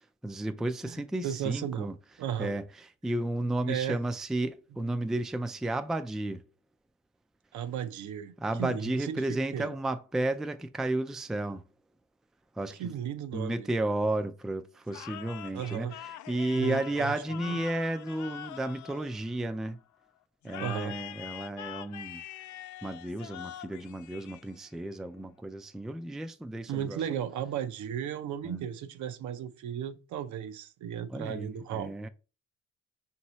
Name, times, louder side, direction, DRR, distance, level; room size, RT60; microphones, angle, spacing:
voice 1, 0.2-1.9 2.4-2.6 3.0-6.4 8.4-11.6 12.6-12.9 13.3-19.8 20.4-22.2 22.8-27.0 28.4-28.6 31.1-32.1, right 1 dB, ahead, 0.3 m, -33 dB
voice 2, 1.2-1.9 2.2-2.5 3.7-4.0 7.5-8.3 8.6-9.7 12.8-13.7 15.5-15.9 16.5-17.6 20.6-20.9 26.7-31.9, right 9 dB, 70° right, 0.6 m, -35 dB
sound 1, 14.9-19.7 20.4-24.9, left 12 dB, 75° left, 0.5 m, -44 dB
5.3 x 2.8 x 3.0 m
cardioid pair, 90°, 30 cm